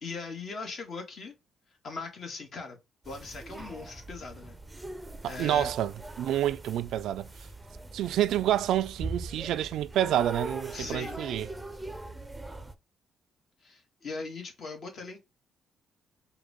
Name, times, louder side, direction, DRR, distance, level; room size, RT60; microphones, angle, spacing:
voice 1, 0.0-1.3 1.8-2.8 3.0-4.6 5.2-5.7 10.7-11.3 13.6-15.2, left 4 dB, 55° left, 1.6 m, -40 dB
sound 1, 3.0-12.8, right 2 dB, 15° right, 0.6 m, -41 dB
voice 2, 5.2-7.3 7.9-11.5, right 12 dB, 80° right, 0.3 m, -28 dB
4.6 x 2.3 x 3.4 m
cardioid pair, 90°, 0 cm